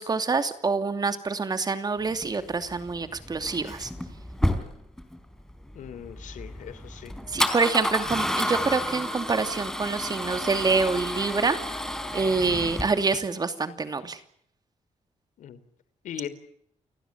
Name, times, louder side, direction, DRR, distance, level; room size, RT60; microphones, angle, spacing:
voice 1, 0.0-3.9 7.3-11.6 12.1-14.2, right 4 dB, 30° right, 9 dB, 2.8 m, -26 dB
Male speech man speaking / Car / Engine starting, 2.1-13.2, left 1 dB, 5° left, 4.0 m, -31 dB
voice 2, 5.7-7.1 15.4-15.6 16.0-16.3, left 9 dB, 85° left, 15 dB, 3.2 m, -39 dB
29.5 x 19.5 x 7.3 m, 0.69 s
cardioid pair, 120°, 13 cm